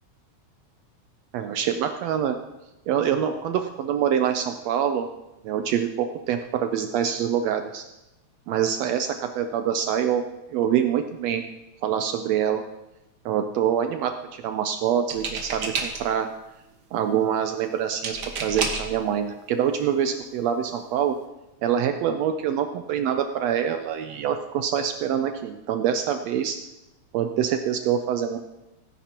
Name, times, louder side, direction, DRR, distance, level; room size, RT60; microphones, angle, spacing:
voice 1, 1.3-2.4 2.9-5.1 5.4-7.8 8.5-10.2 10.5-11.4 11.8-12.6 13.2-16.3 16.9-21.1 21.6-26.6 27.1-28.4, right 9 dB, 85° right, 7 dB, 1.5 m, -25 dB
sound 1, 15.1-16.3 18.0-19.0 19.9-20.0 20.4-20.7, right 4 dB, 50° right, 1.6 m, -30 dB
17.5 x 10.0 x 2.9 m, 0.98 s
omnidirectional pair, 3.6 m